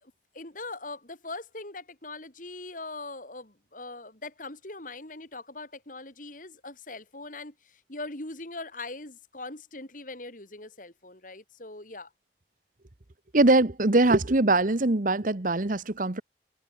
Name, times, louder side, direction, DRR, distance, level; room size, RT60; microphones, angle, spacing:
voice 1, 0.0-12.1, left 2 dB, 50° left, 4.3 m, -41 dB
voice 2, 13.3-16.2, right 2 dB, 50° right, 1.2 m, -22 dB
head